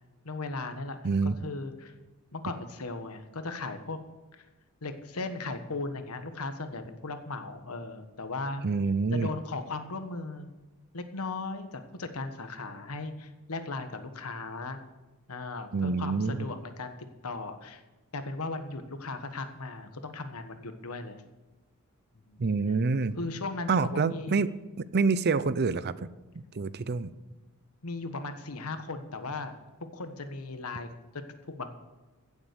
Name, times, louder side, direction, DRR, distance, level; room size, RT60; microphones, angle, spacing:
voice 1, 0.2-1.9 2.3-4.0 4.3-4.4 4.8-8.6 9.1-10.5 10.9-14.8 15.3-16.9 17.2-17.8 18.1-21.2 22.3-22.4 23.2-24.4 27.8-29.5 29.9-31.7, left 3 dB, 75° left, 8 dB, 1.4 m, -37 dB
voice 2, 1.0-1.4 8.6-9.3 15.7-16.5 22.4-23.2 23.7-24.5 24.9-26.1 26.5-27.1, right 4 dB, 50° right, 16 dB, 0.5 m, -27 dB
16.0 x 7.2 x 6.9 m, 1.2 s
head